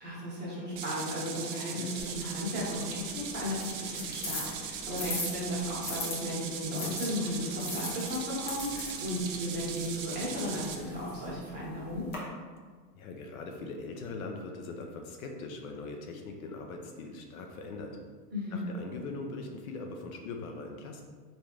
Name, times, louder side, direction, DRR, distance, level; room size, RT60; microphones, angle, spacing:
voice 1, 0.0-12.1 18.3-18.6, equal, 20° right, -7 dB, 1.1 m, -35 dB
sound 1, 0.8-10.8, right 6 dB, 55° right, 0.6 m, -39 dB
sound 2, 2.0-6.2 6.7-12.2, left 2 dB, 20° left, 0.7 m, -41 dB
voice 2, 12.9-17.9 18.5-21.0, left 3 dB, 60° left, 3 dB, 0.6 m, -41 dB
3.5 x 2.6 x 3.0 m, 1.5 s
hypercardioid pair, 125°, 50 cm